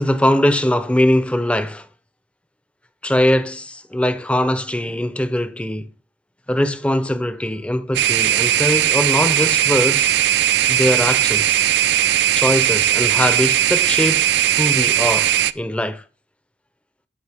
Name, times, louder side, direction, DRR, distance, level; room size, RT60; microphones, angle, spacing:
voice 1, 0.0-1.9 3.0-5.9 6.5-10.2 10.7-11.6 12.3-14.3 14.6-16.0, left 1 dB, 5° left, 0.6 m, -21 dB
sound 1, 7.9-15.5, right 11 dB, 60° right, 0.3 m, -18 dB
12.0 x 5.0 x 3.4 m
head